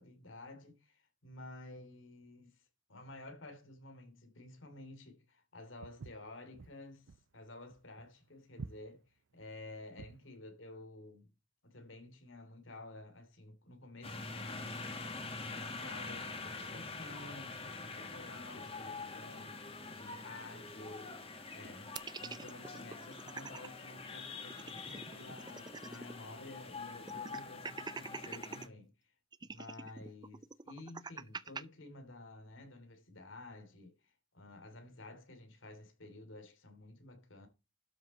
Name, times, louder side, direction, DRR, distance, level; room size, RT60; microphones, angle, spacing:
voice 1, 0.0-2.6 2.9-7.0 7.3-9.0 9.3-11.3 11.6-14.9 15.3-21.2 21.5-28.9 29.5-37.5, left 2 dB, 80° left, 3.0 m, -52 dB
Walk footsteps, 5.8-10.3, right 4 dB, 75° right, 0.5 m, -50 dB
sound 1, 14.0-28.7, left 3 dB, 30° left, 2.0 m, -45 dB
sound 2, 22.0-23.7 24.1-24.2 24.4-26.2 26.5-26.6 27.1-28.7 29.3-31.6, right 4 dB, 20° right, 0.5 m, -45 dB
12.0 x 6.2 x 4.3 m
head